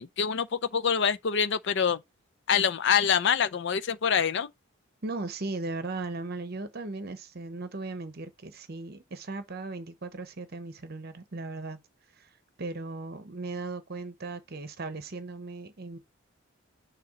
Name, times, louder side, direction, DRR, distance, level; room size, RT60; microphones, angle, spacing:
voice 1, 0.0-2.0 2.5-4.5, left 7 dB, 55° left, 0.5 m, -25 dB
voice 2, 5.0-11.8 12.2-12.3 12.6-16.0, right 3 dB, 45° right, 0.8 m, -37 dB
6.8 x 2.8 x 4.9 m
head